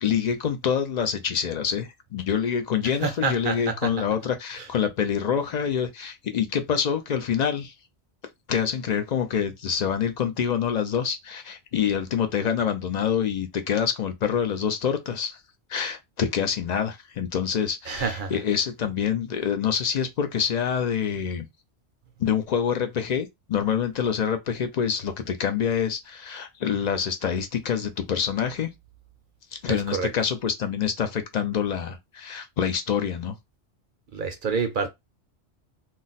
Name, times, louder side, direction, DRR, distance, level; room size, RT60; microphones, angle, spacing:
voice 1, 0.0-7.7 8.5-15.4 15.7-21.5 22.2-28.7 29.6-33.4, left 7 dB, 60° left, 0.4 m, -26 dB
voice 2, 3.0-3.8 17.9-18.3 29.7-30.1 34.1-34.9, right 5 dB, 55° right, 0.6 m, -27 dB
2.4 x 2.1 x 3.9 m
omnidirectional pair, 1.2 m